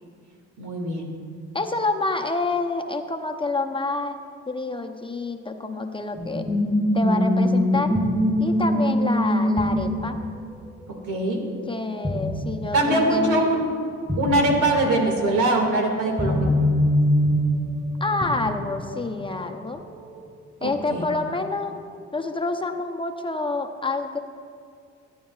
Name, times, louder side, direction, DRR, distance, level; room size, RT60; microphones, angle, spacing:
voice 1, 0.6-1.1 11.1-11.4 12.7-13.7 14.2-16.5 20.6-21.1, right 1 dB, 85° right, 1 dB, 2.1 m, -22 dB
voice 2, 1.5-4.2 4.5-6.5 6.9-7.9 8.4-10.2 11.7-13.4 18.0-19.8 20.6-21.7 22.1-24.2, left 3 dB, 15° left, 4 dB, 0.6 m, -27 dB
sound 1, 6.2-11.8 12.0-12.8 13.1-13.2 14.1-14.8 15.6-19.0 19.7-20.2, equal, 15° right, 2.9 m, -23 dB
17.5 x 9.5 x 2.4 m, 2.3 s
cardioid pair, 90°, 30 cm